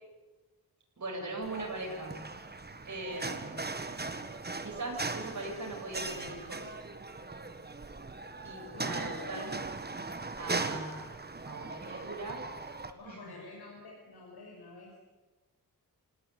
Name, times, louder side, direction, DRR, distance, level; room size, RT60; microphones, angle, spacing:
voice 1, 1.0-2.3 2.8-3.7 4.6-6.7 8.4-9.6 10.4-11.1 11.4-12.5 13.0-13.3, right 2 dB, 50° right, -1 dB, 7.9 m, -40 dB
sound 1, 1.4-12.9, right 3 dB, 25° right, 1.7 m, -39 dB
voice 2, 8.7-9.7 12.9-15.0, left 3 dB, 85° left, -1 dB, 5.7 m, -48 dB
27.0 x 18.0 x 9.4 m, 1.2 s
wide cardioid pair, 120°, 38 cm